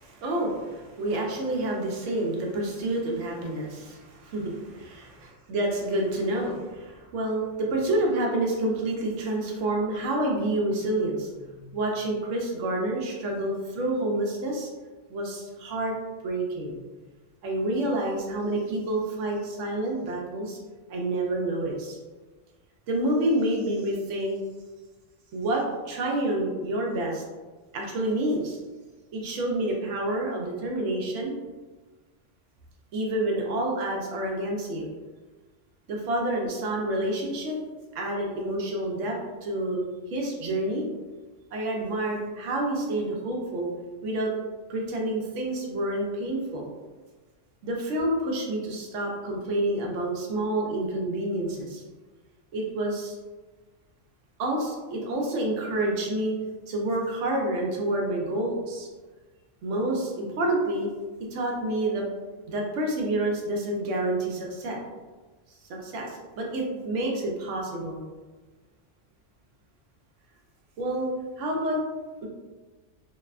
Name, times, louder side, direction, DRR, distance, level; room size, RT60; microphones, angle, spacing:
voice 1, 0.0-14.7 15.1-15.9 16.2-16.8 17.4-20.6 20.9-22.0 22.9-24.4 25.3-27.2 27.7-28.6 29.1-31.4 32.9-34.9 35.9-37.6 37.9-40.9 41.5-43.7 44.0-44.3 44.7-46.7 47.6-51.8 52.5-53.2 54.4-56.3 56.7-58.9 59.6-60.9 61.3-62.0 62.5-64.8 65.8-68.0 70.8-71.1 71.4-71.8 72.2-72.3, right 1 dB, 75° right, -1 dB, 0.9 m, -28 dB
2.7 x 2.1 x 2.3 m, 1.3 s
omnidirectional pair, 1.3 m